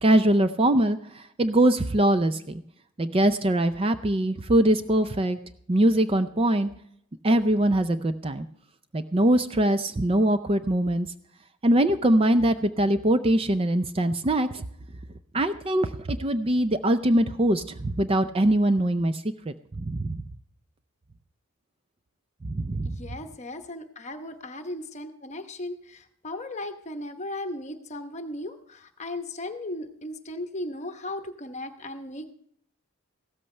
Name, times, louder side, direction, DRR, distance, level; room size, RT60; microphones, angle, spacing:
voice 1, 0.0-2.6 3.0-5.4 5.7-6.7 7.2-8.5 8.9-11.1 11.6-14.6 15.3-20.2 22.5-23.0, right 1 dB, 25° right, 10 dB, 0.4 m, -22 dB
voice 2, 22.8-32.3, left 1 dB, 30° left, 7 dB, 0.9 m, -36 dB
15.5 x 13.5 x 3.3 m, 0.69 s
head